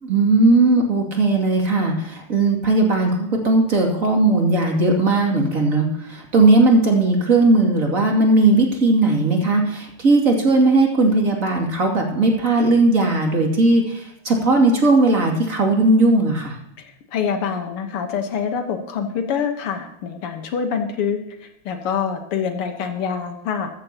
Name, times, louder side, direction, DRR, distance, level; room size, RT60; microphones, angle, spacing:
voice 1, 0.0-16.6, right 2 dB, 40° right, 1 dB, 2.8 m, -17 dB
voice 2, 17.1-23.7, left 7 dB, 90° left, 6 dB, 2.2 m, -25 dB
15.0 x 13.0 x 2.9 m, 0.79 s
omnidirectional pair, 2.4 m